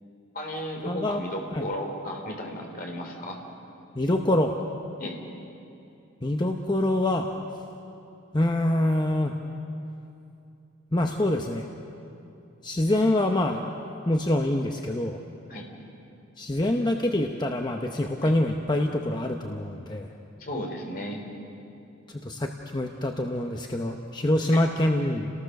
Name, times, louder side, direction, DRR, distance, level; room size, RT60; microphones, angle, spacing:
voice 1, 0.3-3.4 5.0-5.2 15.5-15.7 18.2-18.3 20.4-21.2 24.5-24.6, equal, 45° left, 2 dB, 3.2 m, -34 dB
voice 2, 0.9-1.2 1.5-1.6 4.0-4.5 6.2-7.3 8.3-9.3 10.9-11.7 12.6-13.6 14.1-15.2 16.4-20.1 22.1-25.3, left 1 dB, 20° left, 3 dB, 0.8 m, -25 dB
29.0 x 18.5 x 6.5 m, 2.7 s
head